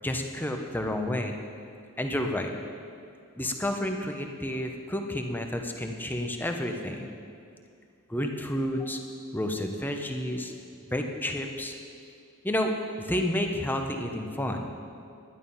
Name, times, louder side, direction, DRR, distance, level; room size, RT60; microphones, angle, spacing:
voice 1, 0.0-1.4 2.0-2.5 3.4-7.1 8.1-9.0 9.3-10.5 10.9-11.8 12.4-14.7, left 1 dB, 10° left, 3 dB, 0.8 m, -30 dB
11.5 x 10.5 x 5.5 m, 2.3 s
head